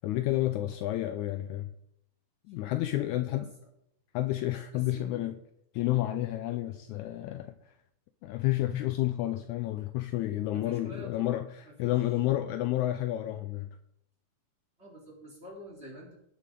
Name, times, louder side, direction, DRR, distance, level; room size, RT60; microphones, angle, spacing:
voice 1, 0.0-1.7 2.5-3.5 4.1-5.4 5.7-7.7 8.2-13.7, left 15 dB, 80° left, 1.8 m, -30 dB
voice 2, 2.8-3.4 4.7-5.1 10.5-12.1 14.8-16.2, right 1 dB, 20° right, 3.9 m, -48 dB
19.0 x 7.5 x 3.7 m
omnidirectional pair, 3.7 m